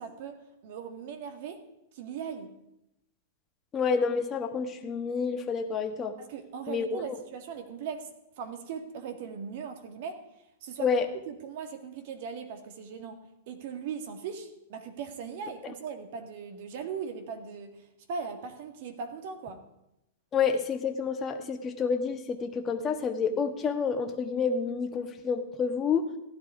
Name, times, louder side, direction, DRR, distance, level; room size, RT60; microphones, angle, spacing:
voice 1, 0.0-1.6 1.9-2.5 6.2-8.1 8.4-10.2 10.6-10.9 11.3-13.2 13.5-19.6, right 6 dB, 60° right, 7 dB, 2.0 m, -39 dB
voice 2, 3.7-6.1 6.7-7.1 10.8-11.1 20.3-26.1, left 5 dB, 25° left, 5 dB, 1.4 m, -29 dB
15.5 x 11.0 x 4.9 m, 0.86 s
hypercardioid pair, 125°, 0 cm